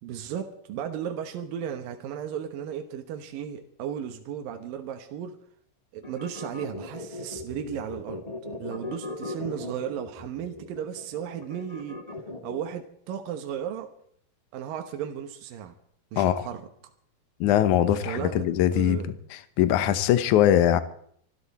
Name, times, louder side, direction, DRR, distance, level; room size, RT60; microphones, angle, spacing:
voice 1, 0.0-5.4 5.9-8.2 8.6-12.0 12.4-13.9 14.5-15.7 16.1-16.6 18.0-19.1, right 9 dB, 70° right, 6 dB, 2.8 m, -35 dB
sound 1, 6.0-12.8, left 2 dB, 20° left, 1.0 m, -38 dB
voice 2, 16.2-16.5 17.4-19.0 19.6-20.8, left 11 dB, 70° left, 12 dB, 2.1 m, -21 dB
25.0 x 12.5 x 4.3 m, 0.65 s
omnidirectional pair, 4.3 m